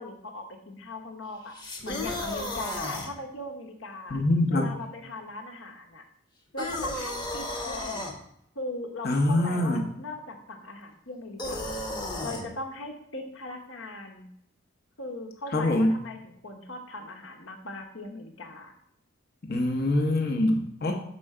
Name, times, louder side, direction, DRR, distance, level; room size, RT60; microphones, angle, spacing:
voice 1, 0.0-4.2 4.5-6.0 6.5-8.1 8.5-11.8 12.2-14.3 15.0-18.7, left 2 dB, 70° left, 4 dB, 1.1 m, -39 dB
sound 1, 1.5-3.1 6.6-8.1 11.4-12.5, left 2 dB, 20° left, 0.9 m, -33 dB
voice 2, 4.1-4.7 9.0-9.8 15.5-15.9 19.5-20.9, left 1 dB, 50° left, 2 dB, 0.8 m, -24 dB
6.1 x 4.4 x 4.8 m, 0.73 s
head